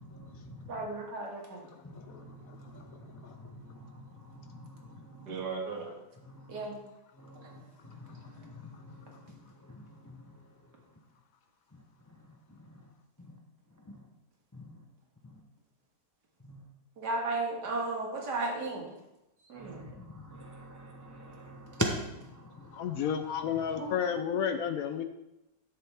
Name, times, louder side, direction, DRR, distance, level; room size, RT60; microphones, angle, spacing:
voice 1, 0.1-0.7 2.0-3.0 3.7-3.8 4.6-5.3 7.2-7.6 8.0-8.1 8.8-8.9 16.5-16.6 19.6-22.0, equal, 20° left, 2 dB, 0.4 m, -40 dB
voice 2, 0.7-1.7 5.3-6.0 6.5-6.8 7.4-7.5 8.2-8.4 17.0-18.9 19.5-20.0 23.8-24.0 24.3-24.4, right 3 dB, 80° right, 0 dB, 2.3 m, -35 dB
voice 3, 1.9-2.8 3.2-3.3 22.7-25.0, left 8 dB, 70° left, 8 dB, 0.9 m, -32 dB
11.5 x 6.7 x 3.5 m, 0.91 s
omnidirectional pair, 1.8 m